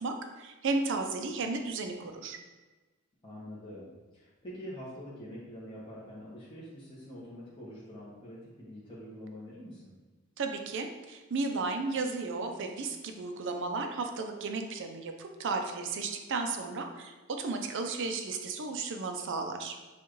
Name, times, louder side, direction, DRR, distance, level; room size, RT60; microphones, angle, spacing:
voice 1, 0.0-2.4 10.4-19.8, right 3 dB, 60° right, 5 dB, 0.5 m, -34 dB
voice 2, 3.2-9.9, equal, 25° left, -10 dB, 1.0 m, -45 dB
7.0 x 2.4 x 3.1 m, 1.2 s
head